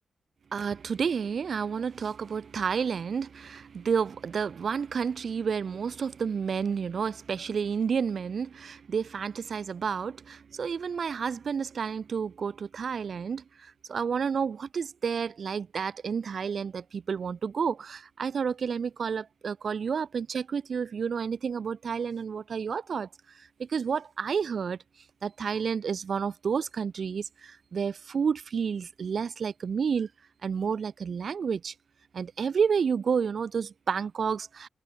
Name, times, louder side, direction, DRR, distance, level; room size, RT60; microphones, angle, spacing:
voice 1, 0.5-23.1 23.4-24.8 25.2-30.1 30.4-31.7 32.1-34.7, right 6 dB, 65° right, 1.0 m, -30 dB
cardioid pair, 80°, 0 cm